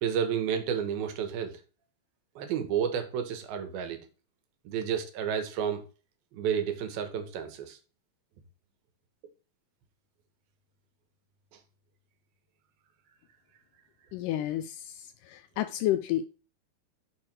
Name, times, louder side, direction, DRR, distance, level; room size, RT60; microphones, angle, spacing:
voice 1, 0.0-1.6 2.4-4.1 4.7-5.8 6.3-7.8, right 8 dB, 85° right, 3.0 m, -31 dB
voice 2, 14.1-14.9 15.3-16.2, left 13 dB, 80° left, 1.9 m, -30 dB
6.4 x 5.0 x 5.9 m
omnidirectional pair, 4.1 m